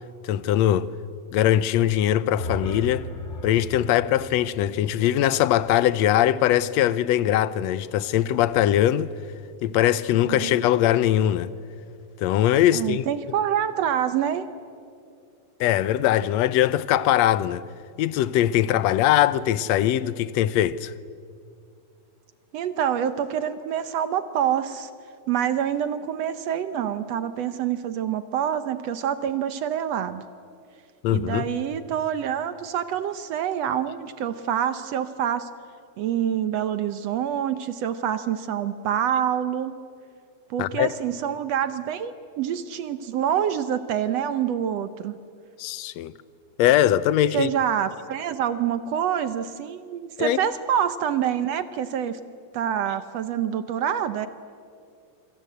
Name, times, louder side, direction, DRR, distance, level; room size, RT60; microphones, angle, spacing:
voice 1, 0.2-0.9 1.3-3.1 3.4-9.1 9.6-11.5 12.2-13.0 15.6-17.6 18.0-20.9 31.0-31.5 40.6-40.9 45.6-46.1 46.6-47.5 50.2-50.4, left 12 dB, 70° left, 1.8 m, -21 dB
sound 1, 2.3-6.3, equal, 30° left, 1.4 m, -37 dB
voice 2, 10.3-10.6 12.7-14.5 22.5-24.9 25.3-30.2 31.1-35.5 36.0-39.7 40.5-45.2 47.3-52.2 52.5-54.3, right 9 dB, 70° right, 1.8 m, -26 dB
27.5 x 26.0 x 7.9 m
omnidirectional pair, 3.4 m